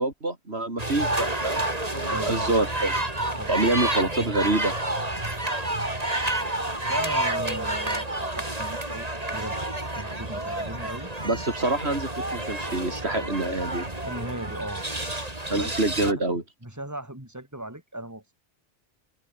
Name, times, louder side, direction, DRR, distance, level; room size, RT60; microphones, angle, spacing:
voice 1, 0.0-1.6 1.9-2.9 3.5-4.7 11.2-13.8 15.5-16.4, right 2 dB, 85° right, 4.6 m, -26 dB
sound 1, 0.8-16.1, right 1 dB, 40° right, 4.0 m, -29 dB
voice 2, 2.1-2.6 3.4-3.5 6.9-8.1 8.4-9.6 9.9-11.1 14.0-14.9 15.5-15.8 16.6-18.3, right 1 dB, 15° right, 4.0 m, -36 dB
omnidirectional pair, 1.1 m